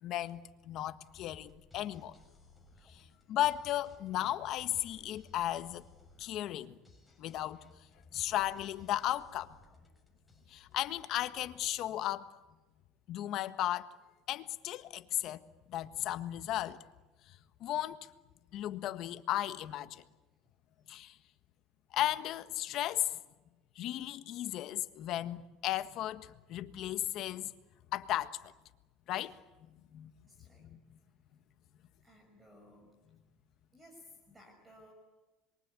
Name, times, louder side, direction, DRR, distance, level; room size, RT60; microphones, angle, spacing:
voice 1, 0.0-2.2 2.9-5.9 6.2-6.8 7.2-7.9 8.1-9.6 10.5-12.3 13.1-13.9 14.3-16.8 17.3-18.1 18.5-20.0 20.9-21.2 21.9-23.2 23.7-27.5 27.9-28.4 29.1-30.1 30.6-30.8, left 13 dB, 55° left, 1.5 m, -35 dB
sound 1, 0.9-12.5, left 2 dB, 5° left, 6.1 m, -61 dB
voice 2, 30.3-30.8 32.0-32.9 33.7-34.9, left 1 dB, 15° right, 5.7 m, -58 dB
26.5 x 23.5 x 8.3 m
supercardioid pair, 125°, 0 cm